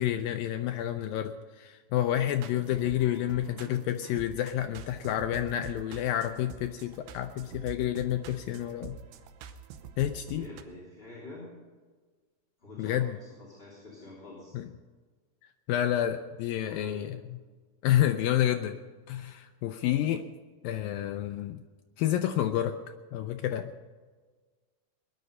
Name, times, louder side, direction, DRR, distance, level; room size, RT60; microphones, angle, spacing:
voice 1, 0.0-9.0 10.0-10.5 12.8-13.2 14.5-14.7 15.7-17.4 17.8-18.8 19.1-20.3 20.6-21.6 22.0-22.8 23.1-23.7, left 12 dB, 85° left, 7 dB, 2.0 m, -29 dB
sound 1, 2.3-10.6, right 7 dB, 80° right, 2.9 m, -46 dB
voice 2, 10.3-11.5 12.6-14.5 16.6-17.0, left 2 dB, 15° left, -6 dB, 2.9 m, -46 dB
19.5 x 11.5 x 5.4 m, 1.4 s
omnidirectional pair, 4.7 m